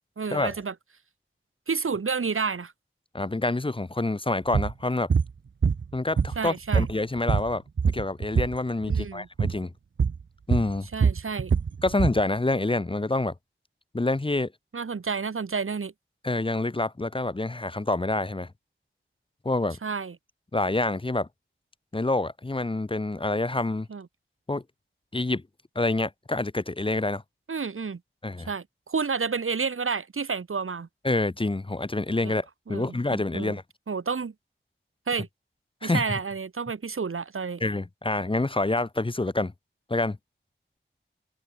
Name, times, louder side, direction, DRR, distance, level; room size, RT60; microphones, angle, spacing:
voice 1, 0.2-0.7 1.7-2.7 6.4-6.9 8.9-9.3 10.9-11.5 14.7-15.9 19.8-20.1 23.9-24.1 27.5-28.0 28.5-30.9 32.2-32.3 32.7-33.6 33.9-34.3 35.1-35.3 35.8-37.6, right 5 dB, 90° right, 1.3 m, -30 dB
voice 2, 3.1-5.1 5.9-7.6 7.9-9.7 10.5-10.9 11.8-13.3 13.9-14.5 16.2-18.5 19.4-19.8 20.5-21.3 21.9-23.9 24.5-24.6 25.1-25.4 25.8-27.2 28.2-28.5 31.0-33.6 35.8-36.2 37.6-39.5 39.9-40.2, left 2 dB, 25° left, 0.7 m, -27 dB
sound 1, 4.5-4.7 5.1-5.3 5.6-6.5 6.7-8.6 8.8-9.1 9.4-9.6 10.0-10.2 10.5-12.2, right 6 dB, 65° right, 0.6 m, -23 dB
open air
wide cardioid pair, 55°, 21 cm